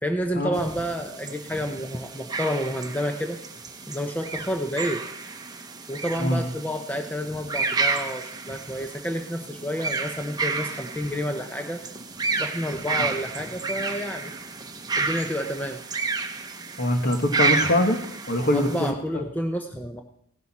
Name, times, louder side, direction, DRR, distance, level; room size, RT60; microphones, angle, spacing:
voice 1, 0.0-3.4 3.9-5.0 5.9-11.8 12.4-14.3 15.0-15.8 18.5-20.0, equal, 10° left, 4 dB, 0.7 m, -30 dB
sound 1, 0.5-18.9, right 4 dB, 20° right, 0.9 m, -31 dB
voice 2, 16.8-18.0 18.3-18.9, left 1 dB, 45° left, 5 dB, 1.5 m, -23 dB
16.5 x 10.5 x 4.3 m, 0.71 s
head